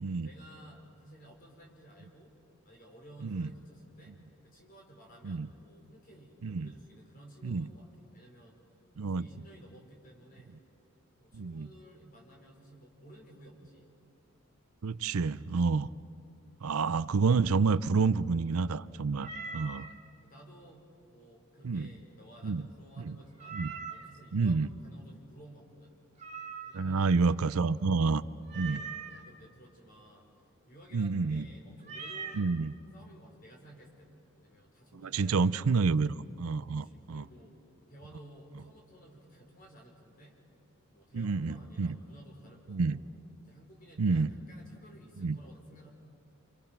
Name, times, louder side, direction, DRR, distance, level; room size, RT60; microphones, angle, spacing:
voice 1, 0.2-2.3 2.6-4.1 4.4-8.6 9.0-10.6 11.2-13.9 20.2-23.6 23.9-26.0 26.6-27.1 28.5-30.3 30.7-35.7 36.7-37.5 37.9-40.4 40.9-43.0 43.4-45.9, right 1 dB, 40° left, 0 dB, 4.9 m, -55 dB
voice 2, 11.3-11.7 14.8-15.9 16.6-19.9 21.6-21.9 22.4-22.6 23.1-23.2 23.5-23.7 24.3-24.7 26.7-28.2 28.6-28.8 30.9-31.5 32.4-32.7 35.1-37.2 41.1-42.0 42.7-43.0 44.0-44.3 45.2-45.4, right 4 dB, 80° right, 16 dB, 0.5 m, -29 dB
Meow, 19.2-19.9 23.4-24.2 26.2-27.0 28.5-29.2 31.8-32.5, right 5 dB, 30° right, 2.0 m, -41 dB
30.0 x 27.5 x 6.0 m, 2.5 s
head